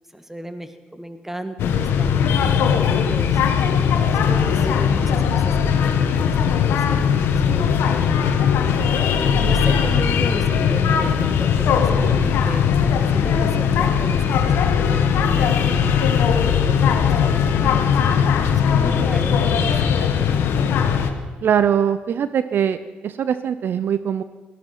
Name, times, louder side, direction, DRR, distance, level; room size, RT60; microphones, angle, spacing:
voice 1, 0.1-3.6 4.2-8.2 9.0-17.9 18.7-19.9 20.6-20.9, right 1 dB, 10° right, 8 dB, 1.7 m, -34 dB
sound 1, 1.6-21.1, left 7 dB, 75° left, 1.3 m, -19 dB
voice 2, 21.4-22.8 23.0-24.2, right 8 dB, 60° right, 13 dB, 0.6 m, -21 dB
17.5 x 14.0 x 5.9 m, 1.3 s
supercardioid pair, 65°, 4 cm